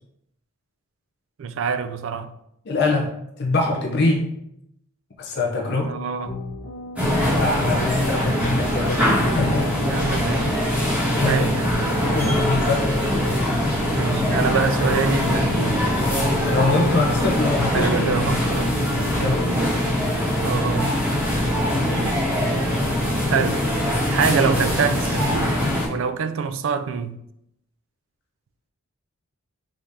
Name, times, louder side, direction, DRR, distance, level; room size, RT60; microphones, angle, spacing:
voice 1, 1.4-2.3 5.8-6.4 9.8-10.6 11.1-11.8 13.9-16.0 17.7-18.8 20.4-20.9 23.2-23.7 24.1-25.5 25.9-27.2, right 6 dB, 65° right, 0.3 m, -25 dB
voice 2, 2.7-4.3 5.2-5.9 7.4-10.1 11.1-11.5 12.1-12.9 16.5-18.0 19.1-19.6, left 3 dB, 50° left, 0.6 m, -24 dB
sound 1, 5.8-19.7, equal, 80° left, 1.0 m, -34 dB
sound 2, 7.0-25.9, left 1 dB, 5° right, 1.5 m, -22 dB
4.9 x 3.5 x 2.6 m
head